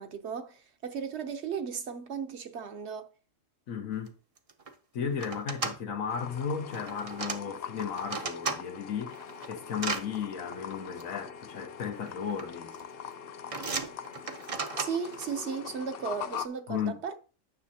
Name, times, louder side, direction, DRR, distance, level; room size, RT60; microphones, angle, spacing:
voice 1, 0.0-3.1 14.8-17.2, right 6 dB, 60° right, 1.0 m, -36 dB
voice 2, 3.7-4.1 4.9-9.2 9.5-12.7 16.7-17.0, left 7 dB, 90° left, 1.4 m, -34 dB
sound 1, 4.1-4.2 4.4-4.7 5.2-5.8 6.7-7.4 7.8-8.6 9.1-10.0 11.0-11.1 12.1-12.4 12.7-13.1 13.5-15.3, right 4 dB, 35° right, 0.6 m, -35 dB
sound 2, 6.1-16.5, left 8 dB, 60° left, 0.6 m, -42 dB
9.3 x 6.2 x 2.8 m
omnidirectional pair, 1.4 m